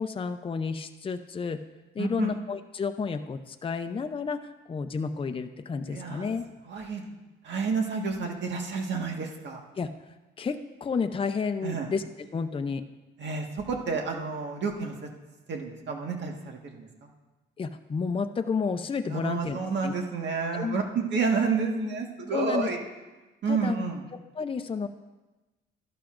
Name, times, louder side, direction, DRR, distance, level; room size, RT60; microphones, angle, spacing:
voice 1, 0.0-1.6 1.9-6.4 9.8-9.9 10.4-12.8 17.6-19.9 20.5-20.8 22.3-22.7 23.5-23.8 24.3-24.9, left 5 dB, 25° left, 7 dB, 0.6 m, -31 dB
voice 2, 2.0-2.3 5.9-6.2 6.7-7.1 7.4-9.6 11.6-11.9 13.2-15.1 15.5-17.1 19.1-22.8 23.4-24.0, right 5 dB, 65° right, 2 dB, 1.7 m, -30 dB
12.5 x 11.5 x 2.6 m, 1.1 s
cardioid pair, 90°, 20 cm